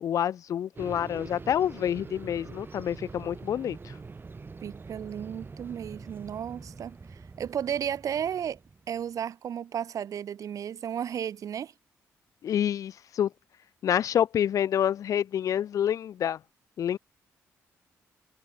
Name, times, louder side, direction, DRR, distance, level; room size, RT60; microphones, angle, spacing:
voice 1, 0.0-3.8 12.4-13.3 13.8-16.4 16.8-17.0, left 9 dB, 65° left, 0.6 m, -27 dB
sound 1, 0.8-9.1, right 4 dB, 35° right, 5.3 m, -44 dB
voice 2, 4.6-8.6 8.9-11.7, right 9 dB, 65° right, 3.7 m, -34 dB
supercardioid pair, 60°, 6 cm